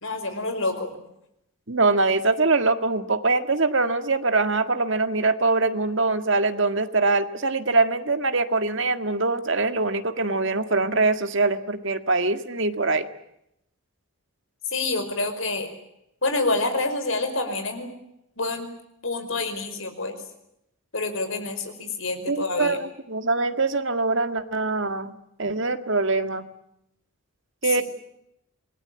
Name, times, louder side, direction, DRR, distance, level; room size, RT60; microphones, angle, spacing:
voice 1, 0.0-0.9 14.7-15.7 16.2-18.0 18.4-18.7 19.0-20.2 20.9-22.8 27.6-27.8, left 3 dB, 65° left, 8 dB, 5.0 m, -27 dB
voice 2, 1.7-13.1 22.3-26.5 27.6-27.8, right 3 dB, 60° right, 9 dB, 1.8 m, -23 dB
27.0 x 20.0 x 8.9 m, 0.81 s
head